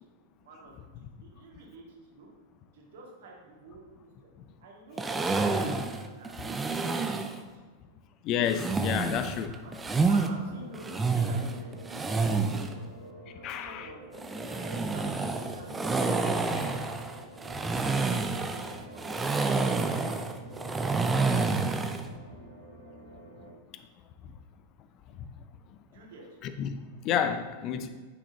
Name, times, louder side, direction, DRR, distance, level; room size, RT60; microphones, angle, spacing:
voice 1, 0.2-1.8 2.1-2.3 2.7-4.3 4.6-7.6 9.5-9.7 10.1-12.8 13.3-16.8 17.7-19.9 25.9-26.3, right 2 dB, 55° right, -2 dB, 1.9 m, -48 dB
sound 1, 5.0-7.4 8.5-10.3 10.7-12.7 14.1-22.1, right 4 dB, 15° right, 0.6 m, -29 dB
voice 2, 8.2-9.5 13.4-13.9 26.4-27.9, left 8 dB, 35° left, 10 dB, 0.5 m, -30 dB
sound 2, 10.3-23.5, right 1 dB, 90° right, 2.3 m, -49 dB
9.4 x 6.0 x 2.8 m, 1.4 s
figure-of-eight pair, 90°, 0 cm